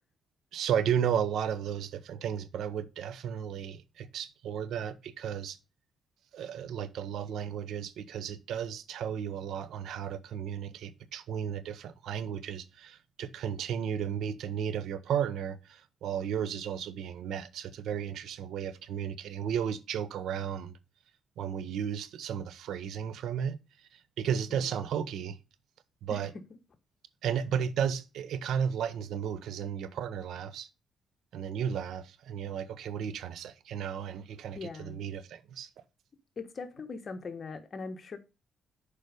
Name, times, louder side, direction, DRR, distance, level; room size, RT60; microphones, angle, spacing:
voice 1, 0.5-5.6 6.3-20.7 21.4-25.4 26.0-26.3 27.2-30.7 31.3-35.7, right 8 dB, 75° right, 0.8 m, -34 dB
voice 2, 34.5-35.0 36.4-38.2, left 4 dB, 40° left, 1.2 m, -40 dB
6.8 x 5.0 x 5.0 m
cardioid pair, 90°, 0 cm